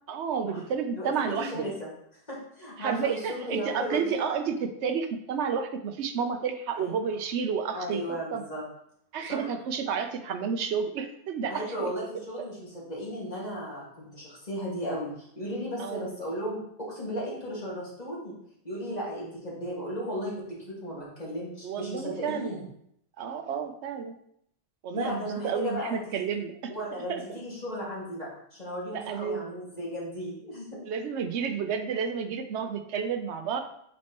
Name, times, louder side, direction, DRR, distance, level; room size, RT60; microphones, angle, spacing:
voice 1, 0.1-1.7 2.8-8.4 9.1-11.9 12.4-12.5 15.8-16.1 21.6-22.7 23.2-24.2 24.8-26.6 27.1-27.2 28.9-29.5 30.8-33.6, right 6 dB, 85° right, 7 dB, 0.9 m, -31 dB
voice 2, 1.0-1.9 2.3-4.2 6.8-6.9 7.7-8.6 9.3-9.5 11.5-18.3 18.6-20.3 20.7-22.6 24.9-26.0 26.7-30.8, equal, 40° left, -6 dB, 2.1 m, -35 dB
7.4 x 4.4 x 3.0 m, 0.71 s
omnidirectional pair, 1.1 m